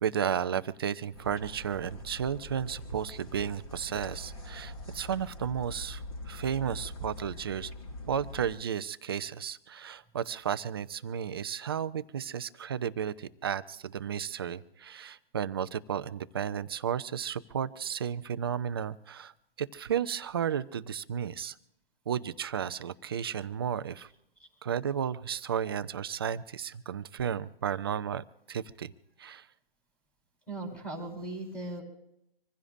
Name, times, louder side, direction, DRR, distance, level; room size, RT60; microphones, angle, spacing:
voice 1, 0.0-7.7 8.1-19.3 19.6-21.6 22.1-24.1 24.6-28.9 29.2-29.5, right 8 dB, 25° right, 13 dB, 0.5 m, -33 dB
sound 1, 1.1-8.5, left 1 dB, 40° left, 5.2 m, -43 dB
voice 2, 30.5-31.8, right 2 dB, 5° left, -1 dB, 4.2 m, -38 dB
26.0 x 15.5 x 2.6 m, 0.81 s
figure-of-eight pair, 145°, 29 cm